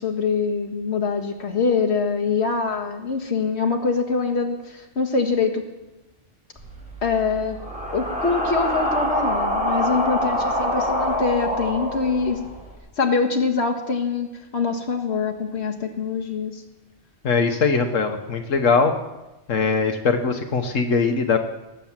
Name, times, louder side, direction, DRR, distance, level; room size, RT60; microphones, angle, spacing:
voice 1, 0.0-5.6 7.0-7.6 7.9-12.4 13.0-14.3 14.5-16.5, left 4 dB, 60° left, 3 dB, 1.9 m, -24 dB
sound 1, 6.6-12.7, equal, 5° right, 4.9 m, -25 dB
voice 2, 17.2-18.9 19.5-21.4, left 4 dB, 90° left, 5 dB, 1.6 m, -21 dB
18.5 x 9.2 x 7.4 m, 1.0 s
omnidirectional pair, 1.3 m